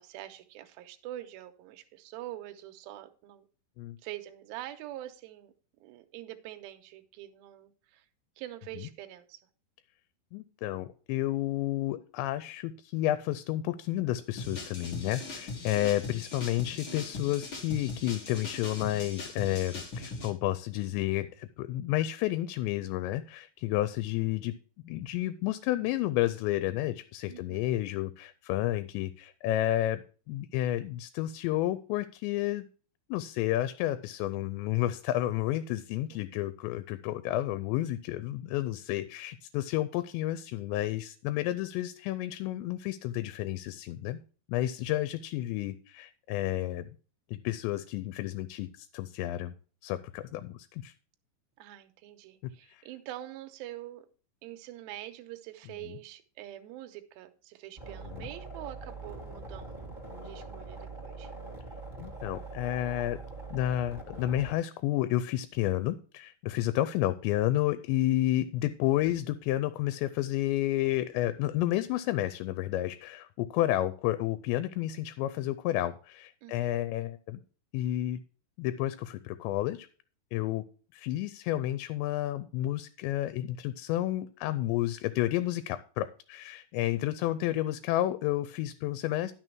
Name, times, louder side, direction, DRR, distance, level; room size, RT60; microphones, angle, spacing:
voice 1, 0.0-3.5 4.0-5.5 5.8-8.1 8.4-9.4 27.3-27.7 36.1-36.2 51.6-54.1 54.4-59.9 60.2-61.3 76.4-76.7, right 14 dB, 80° right, 7 dB, 2.3 m, -45 dB
voice 2, 10.3-24.5 24.8-32.7 33.1-44.2 44.5-46.9 47.3-49.5 49.8-50.9 52.7-52.8 55.8-56.0 58.0-58.3 62.0-63.2 63.5-77.4 77.7-78.2 78.6-79.9 80.3-80.6 80.9-89.3, left 14 dB, 90° left, 13 dB, 2.9 m, -31 dB
sound 1, 14.4-20.3, left 3 dB, 60° left, 1.2 m, -40 dB
sound 2, 57.8-64.5, right 3 dB, 45° right, 0.5 m, -43 dB
11.0 x 6.1 x 4.5 m, 0.39 s
omnidirectional pair, 5.0 m